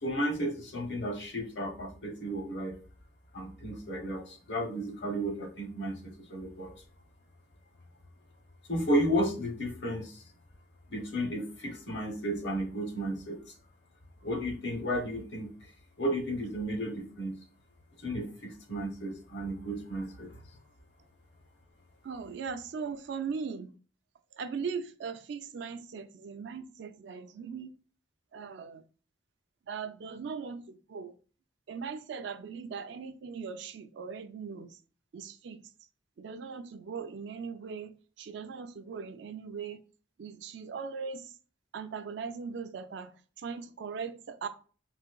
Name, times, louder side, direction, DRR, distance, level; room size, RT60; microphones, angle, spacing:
voice 1, 0.0-2.8 3.3-6.7 8.7-10.2 10.9-13.5 14.2-15.5 16.0-17.4 18.0-20.3, equal, 65° left, 0.9 m, -33 dB
voice 2, 22.0-23.7 24.4-27.7 28.3-28.8 29.7-31.1 31.7-34.8 35.1-35.6 36.2-39.8 40.2-41.2 41.7-43.1 43.4-44.5, right 5 dB, 65° right, 0.3 m, -39 dB
4.0 x 2.5 x 2.3 m
head